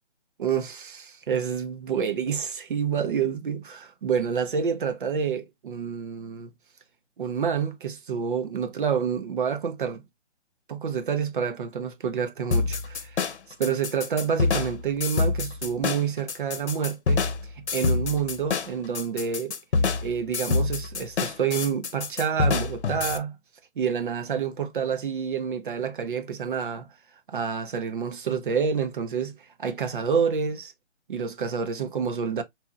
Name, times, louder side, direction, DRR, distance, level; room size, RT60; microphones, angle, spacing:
voice 1, 0.4-6.5 7.2-10.0 10.7-13.3 13.6-17.2 17.6-19.5 20.0-23.4 23.8-26.9 27.3-30.7 31.1-32.4, right 7 dB, 45° right, 0.7 m, -28 dB
sound 1, 12.5-23.2, left 4 dB, 70° left, 0.8 m, -26 dB
4.2 x 2.7 x 2.3 m
hypercardioid pair, 155°, 35 cm